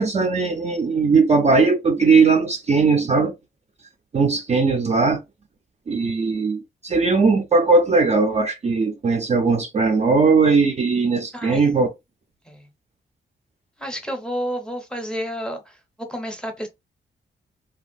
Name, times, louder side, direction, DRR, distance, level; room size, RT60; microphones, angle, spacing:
voice 1, 0.0-3.3 4.1-5.2 5.9-11.9, right 4 dB, 35° right, 0.4 m, -19 dB
voice 2, 11.3-11.7 12.4-12.7 13.8-15.8 16.1-16.7, equal, 5° left, 0.7 m, -30 dB
3.2 x 2.3 x 2.6 m
wide cardioid pair, 150°, 19 cm